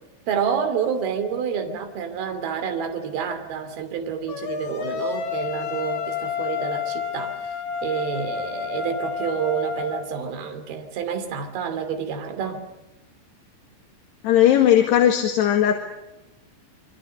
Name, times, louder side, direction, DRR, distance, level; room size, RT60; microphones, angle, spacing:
voice 1, 0.3-7.4 7.8-12.6, right 7 dB, 70° right, 7 dB, 4.5 m, -28 dB
sound 1, 4.3-10.1, left 7 dB, 40° left, 3.9 m, -30 dB
voice 2, 14.2-15.8, left 11 dB, 90° left, 4 dB, 4.1 m, -17 dB
28.5 x 25.0 x 6.7 m, 0.95 s
omnidirectional pair, 4.7 m